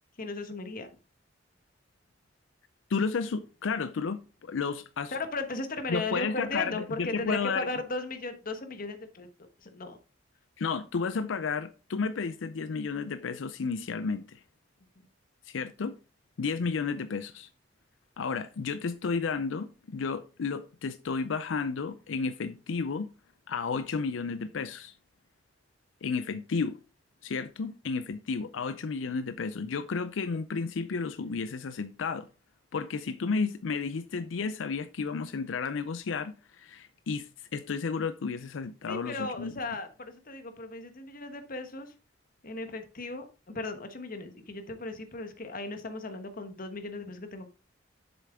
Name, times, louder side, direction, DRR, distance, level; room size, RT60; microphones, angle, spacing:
voice 1, 0.2-0.9 5.1-9.3 9.6-10.0 38.9-41.9 42.4-47.5, left 3 dB, 50° left, 1.3 m, -36 dB
voice 2, 2.9-5.2 5.9-7.7 10.6-14.4 15.4-16.0 16.4-17.5 18.2-23.1 23.5-24.9 26.0-26.8 27.2-32.3 32.7-39.5, left 5 dB, 85° left, 0.5 m, -32 dB
7.5 x 7.0 x 3.5 m
head